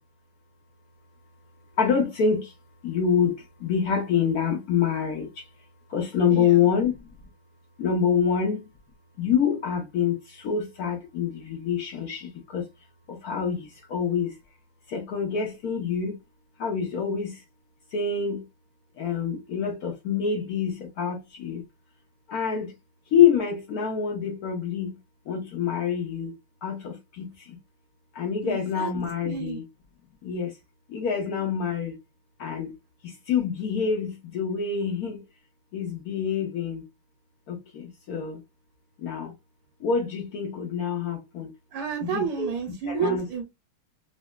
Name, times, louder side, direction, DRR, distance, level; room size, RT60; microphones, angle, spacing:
voice 1, 1.8-2.5 2.8-5.5 5.9-6.9 7.8-8.7 9.2-12.7 13.1-14.3 14.9-16.2 16.6-17.4 17.9-18.4 19.0-21.6 22.3-22.7 23.1-25.0 25.3-26.4 26.6-27.6 28.1-29.6 30.2-30.5 30.9-32.0 32.4-32.7 33.0-35.2 35.7-36.8 37.5-38.4 39.0-39.3 39.8-41.5 42.0-42.5 42.8-43.3, left 7 dB, 80° left, 0.8 m, -26 dB
voice 2, 28.4-28.9 29.2-29.6 41.7-43.4, right 7 dB, 80° right, 1.6 m, -30 dB
3.9 x 2.1 x 2.2 m
omnidirectional pair, 2.4 m